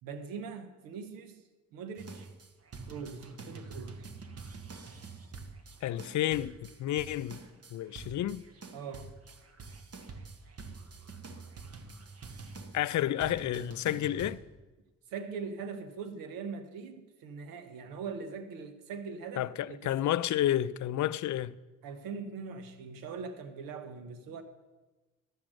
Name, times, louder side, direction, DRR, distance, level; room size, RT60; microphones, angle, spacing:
voice 1, 0.0-1.4 1.7-2.3 2.9-4.0 8.7-9.1 15.1-19.8 21.8-24.4, right 5 dB, 90° right, 1.1 m, -41 dB
sound 1, 2.0-14.3, right 4 dB, 45° right, 1.4 m, -47 dB
voice 2, 5.8-7.4 7.7-8.4 12.7-14.4 19.4-21.6, left 12 dB, 60° left, 0.5 m, -30 dB
11.5 x 7.4 x 6.4 m
supercardioid pair, 60°, 33 cm